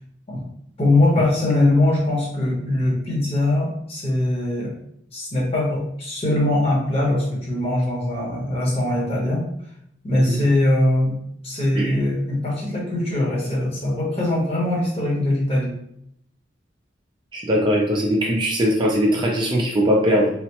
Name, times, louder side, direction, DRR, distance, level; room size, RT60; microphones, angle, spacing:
voice 1, 0.8-4.8 5.1-9.5 10.0-11.2 11.4-15.8, left 1 dB, 30° left, -4 dB, 0.9 m, -21 dB
voice 2, 17.3-20.3, equal, 25° right, -1 dB, 0.4 m, -20 dB
3.2 x 2.0 x 2.9 m, 0.73 s
head